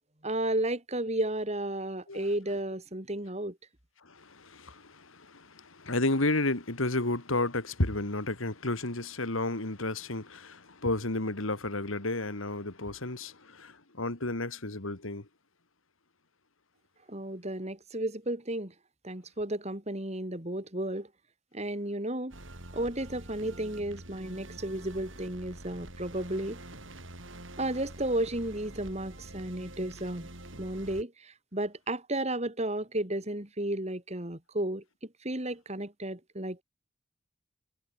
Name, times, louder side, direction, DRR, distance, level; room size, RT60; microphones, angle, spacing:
voice 1, 0.2-3.6 17.1-18.7 19.0-21.1 21.5-22.3 22.7-26.6 27.6-30.3 30.6-36.6, right 1 dB, 35° right, 3.1 m, -33 dB
voice 2, 4.0-15.3, left 2 dB, 85° left, 3.0 m, -32 dB
sound 1, 22.3-31.0, right 1 dB, 70° right, 6.2 m, -46 dB
head